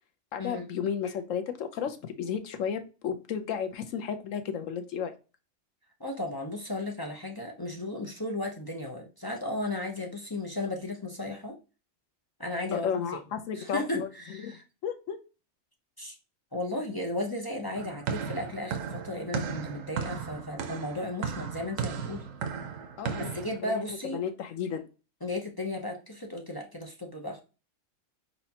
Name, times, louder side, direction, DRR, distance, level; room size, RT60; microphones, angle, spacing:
voice 1, 0.3-5.1 12.7-14.1 14.4-15.2 23.0-23.4 23.6-23.8 24.1-24.9, left 7 dB, 80° left, 8 dB, 1.1 m, -33 dB
voice 2, 6.0-11.6 12.4-13.0 13.5-14.6 16.0-16.2 16.5-22.2 23.2-24.2 25.2-27.4, left 1 dB, 25° left, 0 dB, 0.5 m, -35 dB
sound 1, 17.7-23.6, right 6 dB, 85° right, 1.1 m, -35 dB
4.4 x 4.1 x 2.8 m, 0.32 s
omnidirectional pair, 1.3 m